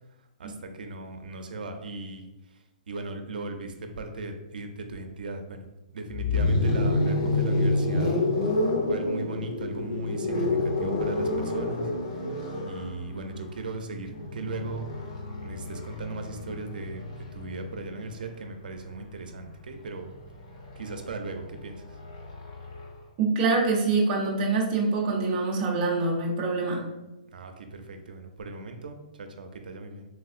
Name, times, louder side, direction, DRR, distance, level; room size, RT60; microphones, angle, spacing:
voice 1, 0.4-2.6 2.9-8.2 8.9-11.9 12.6-14.9 15.4-20.1 20.8-22.0 27.3-30.0, right 3 dB, 90° right, 5 dB, 0.4 m, -37 dB
sound 1, 6.1-18.1 19.3-22.9, left 2 dB, 35° left, 0.5 m, -29 dB
voice 2, 23.2-26.8, right 3 dB, 20° right, -2 dB, 0.4 m, -25 dB
3.4 x 2.7 x 2.4 m, 0.97 s
hypercardioid pair, 175°, 5 cm